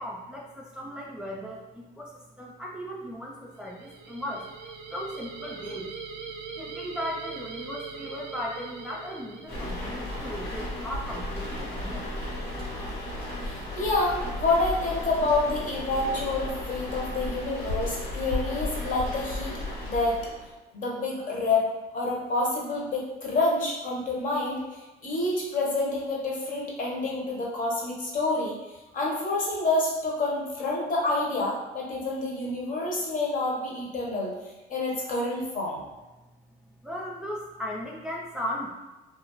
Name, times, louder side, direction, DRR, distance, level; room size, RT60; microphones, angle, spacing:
voice 1, 0.0-4.5 4.9-5.9 6.5-12.1 36.8-38.7, equal, 5° right, -3 dB, 0.3 m, -37 dB
sound 1, 3.6-10.0, right 5 dB, 75° right, 0.4 m, -41 dB
sound 2, 9.5-20.5, left 1 dB, 80° left, 1.2 m, -34 dB
voice 2, 13.4-19.5 19.8-20.2 20.7-21.7 21.9-28.6 28.9-34.3 34.7-35.8, left 2 dB, 55° left, -3 dB, 0.9 m, -28 dB
2.4 x 2.3 x 2.9 m, 1.1 s
cardioid pair, 110°, 17 cm